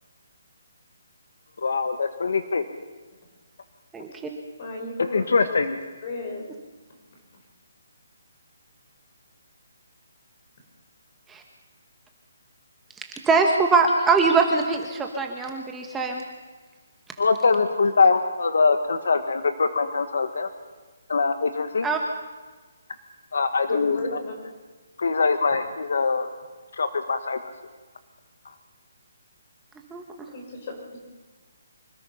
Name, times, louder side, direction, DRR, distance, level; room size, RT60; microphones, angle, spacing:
voice 1, 1.6-2.6 5.0-5.8 17.2-20.5 21.1-21.9 23.3-24.2 25.0-26.3 26.7-27.5, left 4 dB, 70° left, 8 dB, 1.5 m, -23 dB
voice 2, 3.9-4.3 11.3-11.4 13.3-16.2 21.8-22.0 29.9-30.0, right 4 dB, 5° right, 2 dB, 1.1 m, -22 dB
voice 3, 4.6-5.2 5.5-5.6 6.0-6.4 23.7-24.3 30.3-31.0, left 3 dB, 35° left, 2 dB, 5.3 m, -34 dB
25.0 x 18.5 x 5.7 m, 1.4 s
hypercardioid pair, 165°, 0 cm